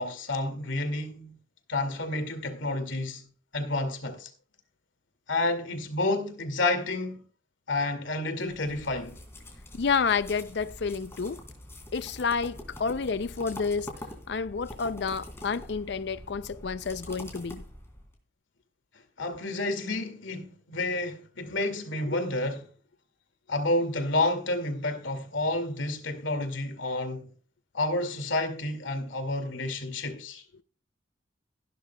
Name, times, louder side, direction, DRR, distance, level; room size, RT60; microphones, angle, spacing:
voice 1, 0.0-1.3 1.7-3.3 3.5-4.3 5.3-7.2 7.7-9.2 19.2-22.6 23.5-27.3 27.7-30.4, left 2 dB, 80° left, 2.2 m, -30 dB
sound 1, 8.4-18.1, left 1 dB, 15° left, 3.2 m, -45 dB
voice 2, 9.7-11.4 11.9-13.9 14.3-17.6 22.1-22.2, left 5 dB, 60° left, 0.5 m, -29 dB
16.0 x 12.0 x 2.3 m
head